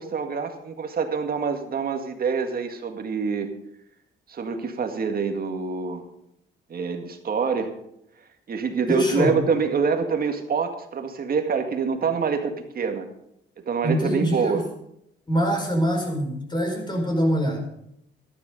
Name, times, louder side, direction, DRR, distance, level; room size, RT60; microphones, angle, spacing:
voice 1, 0.0-3.5 4.3-6.0 6.7-7.7 8.5-13.1 13.7-14.6, right 5 dB, 50° right, 5 dB, 2.0 m, -26 dB
voice 2, 8.9-9.3 13.8-14.6 15.3-17.7, equal, 20° left, 2 dB, 5.0 m, -24 dB
13.0 x 11.0 x 5.3 m, 0.75 s
cardioid pair, 90°, 20 cm